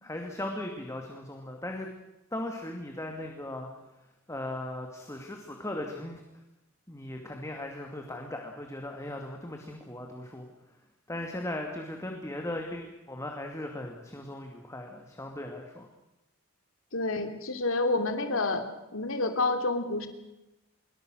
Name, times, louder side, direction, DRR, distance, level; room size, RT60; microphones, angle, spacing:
voice 1, 0.0-1.9 2.3-3.7 4.3-6.2 6.9-10.4 11.1-15.9, left 1 dB, 15° left, 2 dB, 2.5 m, -38 dB
voice 2, 16.9-18.7 18.9-20.1, left 2 dB, 75° left, 7 dB, 3.1 m, -28 dB
26.0 x 23.0 x 6.5 m, 0.95 s
head